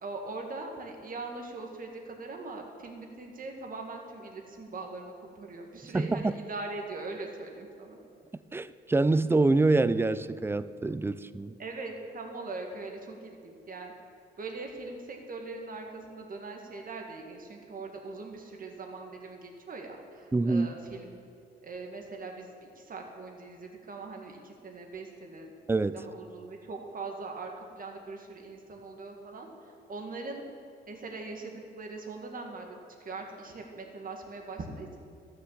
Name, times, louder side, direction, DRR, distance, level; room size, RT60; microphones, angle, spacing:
voice 1, 0.0-8.0 11.6-13.9 14.4-21.2 21.6-25.5 25.9-30.4 30.9-35.0, right 3 dB, 45° right, 2 dB, 1.9 m, -41 dB
voice 2, 5.9-6.3 8.5-11.5 20.3-20.7 25.7-26.0, right 3 dB, 10° right, 15 dB, 0.4 m, -25 dB
13.0 x 6.9 x 7.4 m, 2.5 s
cardioid pair, 90°, 20 cm